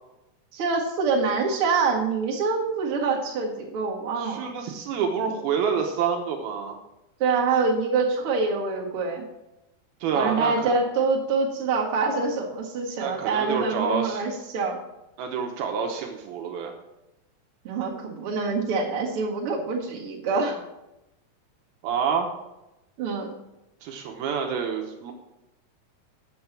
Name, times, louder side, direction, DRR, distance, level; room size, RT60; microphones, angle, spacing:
voice 1, 0.5-4.5 7.2-9.3 10.1-14.8 17.6-20.6 23.0-23.3, right 4 dB, 45° right, -3 dB, 2.0 m, -25 dB
voice 2, 4.2-6.8 10.0-10.7 13.0-14.2 15.2-16.7 21.8-22.3 23.8-25.1, right 6 dB, 75° right, 3 dB, 2.7 m, -28 dB
8.5 x 7.5 x 5.9 m, 0.93 s
omnidirectional pair, 4.6 m